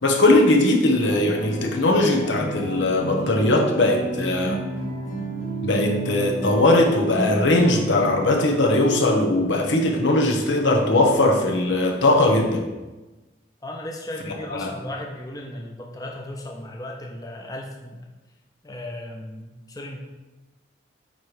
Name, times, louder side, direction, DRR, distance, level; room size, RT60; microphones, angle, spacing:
voice 1, 0.0-4.6 5.6-12.7 14.5-14.7, left 2 dB, 85° left, 2 dB, 1.1 m, -20 dB
sound 1, 1.0-9.5, right 2 dB, 40° left, 2.1 m, -31 dB
voice 2, 13.6-18.0 18.6-20.0, left 1 dB, 20° left, 0 dB, 0.7 m, -36 dB
9.3 x 3.2 x 4.9 m, 1.1 s
head